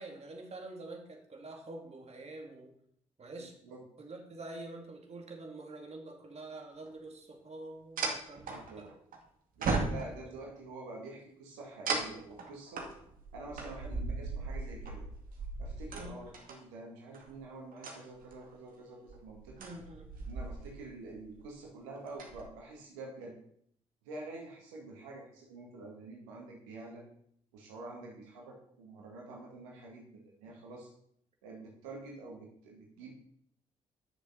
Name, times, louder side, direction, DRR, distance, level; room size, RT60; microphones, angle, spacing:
voice 1, 0.0-2.7 3.2-3.6 4.0-8.9 10.0-10.1 16.0-16.2 19.6-20.1, right 2 dB, 40° right, 3 dB, 2.5 m, -46 dB
voice 2, 3.3-3.8 8.5-8.9 9.6-12.9 13.3-15.0 15.6-19.6 20.3-23.3 24.0-27.0 27.5-30.9 31.4-33.1, right 2 dB, 80° right, -1 dB, 2.0 m, -47 dB
sound 1, 6.9-7.0 8.0-9.2 9.6-10.4 11.9-16.6 17.1-17.4 17.7-18.5 19.1-20.9 21.1-21.5 22.0-22.4, right 3 dB, 60° right, 2.2 m, -37 dB
9.3 x 6.9 x 5.7 m, 0.66 s
hypercardioid pair, 45°, 16 cm